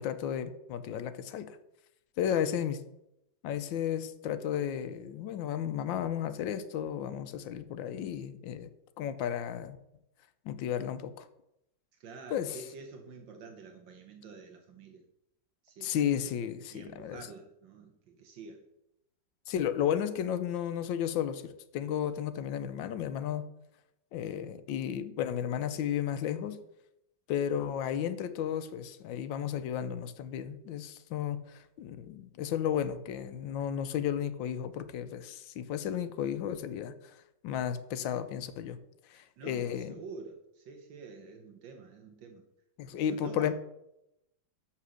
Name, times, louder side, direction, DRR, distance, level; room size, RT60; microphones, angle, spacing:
voice 1, 0.0-1.6 2.2-2.8 3.4-8.7 9.0-9.8 10.4-11.3 12.3-12.6 15.8-17.3 19.5-23.5 24.1-26.6 27.3-37.2 37.4-38.8 39.1-40.0 42.8-43.5, left 9 dB, 90° left, 12 dB, 1.4 m, -33 dB
voice 2, 12.0-15.0 15.6-15.9 16.7-18.6 39.1-42.4 42.9-43.5, right 4 dB, 75° right, 4 dB, 1.6 m, -48 dB
6.9 x 5.8 x 6.3 m, 0.85 s
omnidirectional pair, 2.1 m